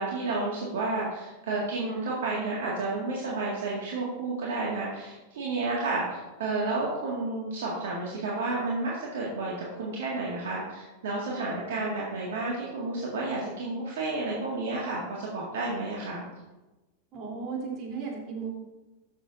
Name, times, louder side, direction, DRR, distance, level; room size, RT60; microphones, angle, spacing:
voice 1, 0.0-16.2, right 3 dB, 65° right, -4 dB, 1.9 m, -31 dB
voice 2, 17.1-18.5, right 5 dB, 40° right, -2 dB, 3.3 m, -35 dB
13.0 x 7.0 x 2.6 m, 1.1 s
figure-of-eight pair, 90°, 0 cm